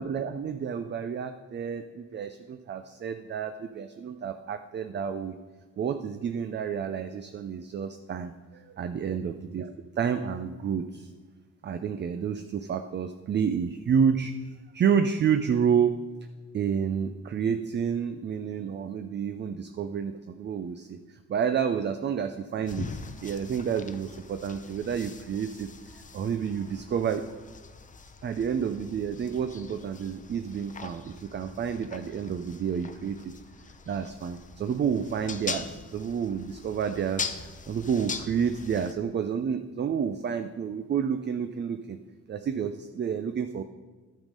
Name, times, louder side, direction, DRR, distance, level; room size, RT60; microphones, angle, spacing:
voice 1, 0.0-5.3 5.8-11.1 11.6-14.3 14.7-16.0 16.5-27.2 28.2-33.2 33.9-37.3 37.7-42.0 42.3-43.6, right 7 dB, 35° right, 9 dB, 0.5 m, -29 dB
sound 1, 22.7-38.9, left 5 dB, 25° left, 0.6 m, -42 dB
10.5 x 5.5 x 5.3 m, 1.4 s
cardioid pair, 90°, 30 cm